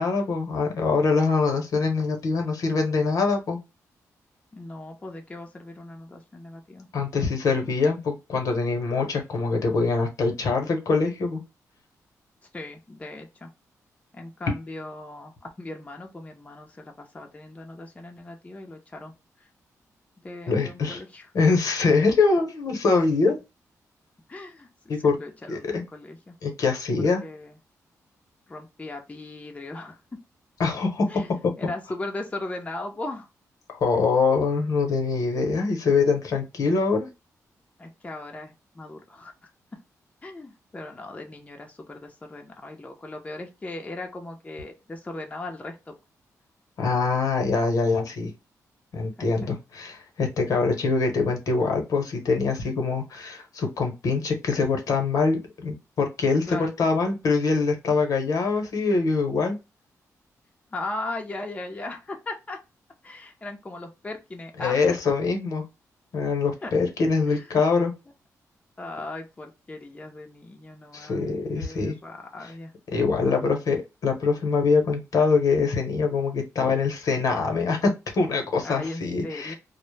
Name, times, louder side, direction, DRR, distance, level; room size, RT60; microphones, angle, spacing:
voice 1, 0.0-3.6 6.9-11.4 14.5-14.6 20.5-21.0 21.3-23.4 24.9-25.2 25.5-25.8 26.4-27.2 30.6-31.1 33.7-37.1 46.8-48.3 48.9-59.6 64.6-65.6 66.1-67.9 70.9-71.9 72.9-79.5, left 4 dB, 75° left, 4 dB, 0.8 m, -24 dB
voice 2, 4.5-6.9 12.5-13.5 14.1-19.5 20.2-21.3 23.3-23.4 24.3-26.4 27.2-27.6 28.5-30.0 31.1-31.3 31.6-33.3 37.8-39.5 40.2-45.9 49.2-49.5 56.5-56.7 60.7-62.6 63.0-64.9 66.6-66.8 67.3-67.4 68.8-71.3 71.5-72.7 78.6-79.5, left 2 dB, 20° left, 2 dB, 0.5 m, -38 dB
2.0 x 2.0 x 3.1 m, 0.25 s
cardioid pair, 85°, 6 cm